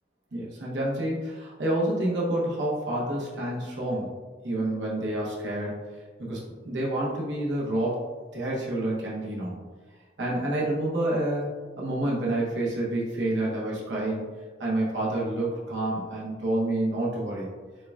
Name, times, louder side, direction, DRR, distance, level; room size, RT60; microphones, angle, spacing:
voice 1, 0.3-4.1 4.4-5.8 6.2-8.0 8.3-9.6 10.2-11.5 11.8-14.3 14.6-17.5, right 1 dB, 70° right, -5 dB, 0.9 m, -28 dB
6.5 x 2.3 x 2.3 m, 1.4 s
head